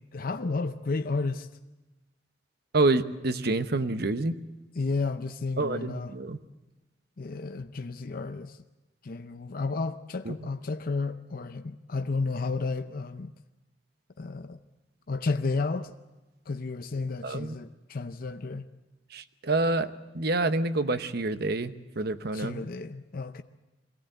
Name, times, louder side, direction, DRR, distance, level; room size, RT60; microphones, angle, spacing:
voice 1, 0.0-1.5 4.8-6.1 7.2-8.6 9.0-13.3 14.2-14.6 15.1-15.9 16.5-18.7 22.3-23.4, left 3 dB, 50° left, 0.6 m, -32 dB
voice 2, 2.7-4.3 5.6-6.4 10.2-10.3 17.2-17.6 19.1-22.6, right 2 dB, 60° right, 0.9 m, -27 dB
22.5 x 17.0 x 7.9 m
head